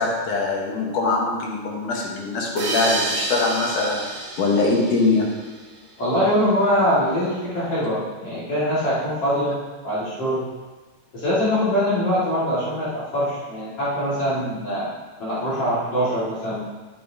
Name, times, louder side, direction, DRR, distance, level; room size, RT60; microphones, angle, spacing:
voice 1, 0.0-5.3, left 3 dB, 70° left, -2 dB, 2.8 m, -22 dB
sound 1, 2.6-5.9, right 2 dB, 65° right, 2.8 m, -29 dB
voice 2, 6.0-9.6 9.8-10.4 11.1-14.9 15.2-16.6, equal, 50° left, -11 dB, 3.0 m, -23 dB
11.0 x 9.2 x 2.8 m, 1.3 s
omnidirectional pair, 3.8 m